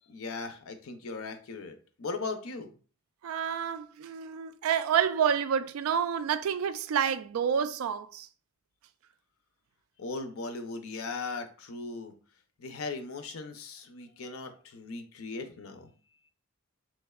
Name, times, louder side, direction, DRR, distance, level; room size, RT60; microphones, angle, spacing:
voice 1, 0.1-2.7 10.0-12.1 12.6-15.9, left 3 dB, 80° left, 0.5 m, -38 dB
voice 2, 3.2-8.3, right 8 dB, 80° right, 0.3 m, -29 dB
3.5 x 3.2 x 2.3 m
head